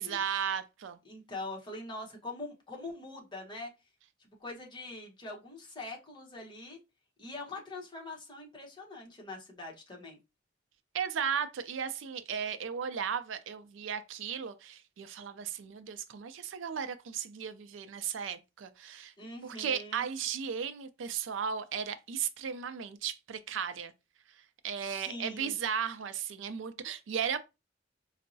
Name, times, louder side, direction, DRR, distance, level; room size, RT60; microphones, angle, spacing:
voice 1, 0.0-1.0 10.9-19.1 19.4-23.9 24.6-27.4, right 7 dB, 80° right, 0.4 m, -35 dB
voice 2, 1.0-3.7 4.2-6.8 7.2-10.2 19.2-20.0 24.8-25.5, left 2 dB, 25° left, 1.0 m, -43 dB
4.4 x 2.0 x 2.6 m
head